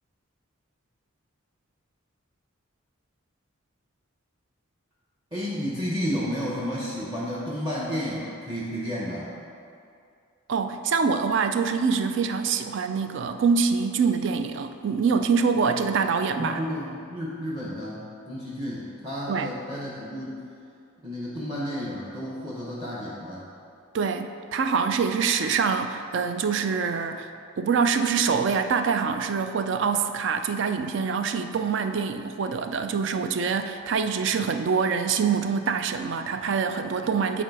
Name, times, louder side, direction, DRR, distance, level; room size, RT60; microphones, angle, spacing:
voice 1, 5.3-9.3 16.4-20.4 21.0-23.5, equal, 20° right, -6 dB, 0.8 m, -32 dB
voice 2, 10.5-16.6 19.3-19.5 23.9-27.3 27.6-37.4, right 5 dB, 55° right, 8 dB, 0.3 m, -25 dB
9.3 x 3.9 x 4.7 m, 2.5 s
head